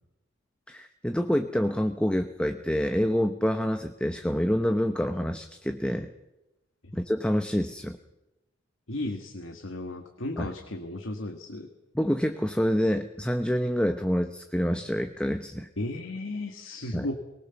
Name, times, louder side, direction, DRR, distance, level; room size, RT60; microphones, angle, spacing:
voice 1, 0.7-6.1 6.9-8.0 10.4-10.5 11.9-15.7 16.9-17.1, equal, 5° left, 7 dB, 0.8 m, -27 dB
voice 2, 8.9-11.7 15.8-17.1, left 1 dB, 70° left, 5 dB, 1.6 m, -35 dB
22.0 x 19.0 x 7.0 m, 0.98 s
head